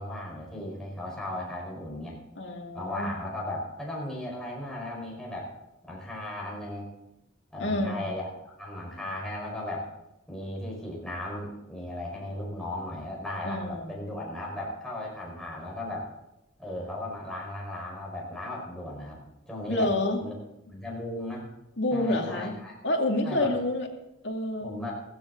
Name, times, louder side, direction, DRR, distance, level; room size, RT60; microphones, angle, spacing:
voice 1, 0.0-2.2 2.7-5.5 5.8-6.9 7.5-9.9 10.3-16.1 16.6-19.9 20.2-20.3 20.6-21.5 21.9-22.7 23.2-23.5 24.6-24.9, left 1 dB, 5° left, -3 dB, 4.9 m, -36 dB
voice 2, 2.4-3.1 7.6-8.0 13.4-14.0 19.7-20.2 21.8-22.5 22.8-23.9 24.2-24.8, left 1 dB, 60° left, 1 dB, 2.5 m, -28 dB
16.0 x 16.0 x 4.0 m, 0.90 s
head